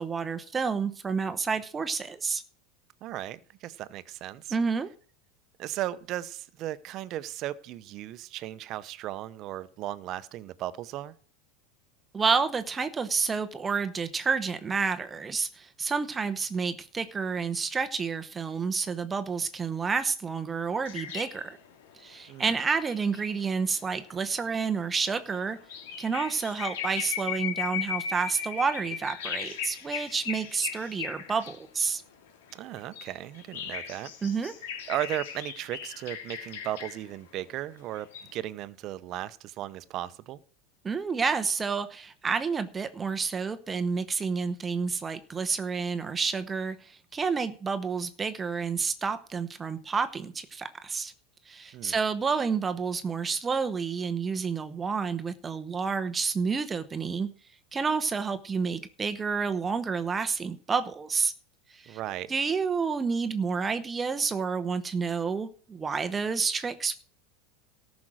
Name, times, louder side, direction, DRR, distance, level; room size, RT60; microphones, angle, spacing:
voice 1, 0.0-2.4 4.5-4.9 12.1-21.6 21.9-25.6 26.0-32.0 34.2-34.5 40.8-51.1 51.5-57.3 57.7-61.3 61.7-62.0 62.3-67.0, right 5 dB, 20° right, 10 dB, 0.9 m, -29 dB
voice 2, 3.0-4.6 5.6-11.1 22.3-22.5 32.5-34.1 34.9-40.4 51.7-51.9 61.9-62.3, right 13 dB, 45° right, 15 dB, 0.8 m, -36 dB
sound 1, 20.8-31.6 32.2-37.1 37.9-38.4, left 8 dB, 85° left, 2.8 m, -38 dB
14.0 x 6.2 x 6.3 m, 0.43 s
supercardioid pair, 115°, 0 cm